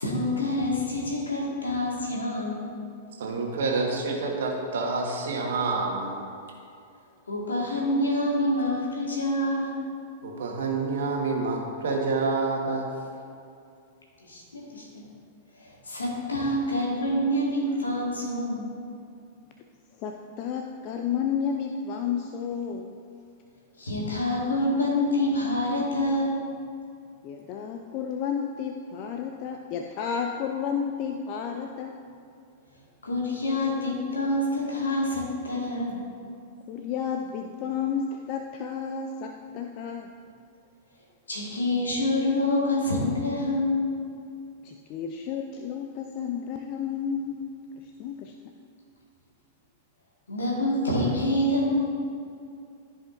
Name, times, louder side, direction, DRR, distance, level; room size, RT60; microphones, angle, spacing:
voice 1, 0.0-2.7 7.3-9.8 14.2-15.0 15.6-18.7 23.8-26.4 33.0-36.0 41.3-44.0 50.3-51.8, left 1 dB, 75° left, -3 dB, 1.8 m, -27 dB
voice 2, 3.2-6.2 10.2-12.9, right 3 dB, 60° right, 0 dB, 1.3 m, -28 dB
voice 3, 20.0-22.9 27.2-31.9 36.7-40.1 44.6-47.5 47.8-48.3, left 7 dB, 40° left, 4 dB, 0.4 m, -31 dB
13.5 x 5.1 x 2.6 m, 2.5 s
figure-of-eight pair, 95°, 0 cm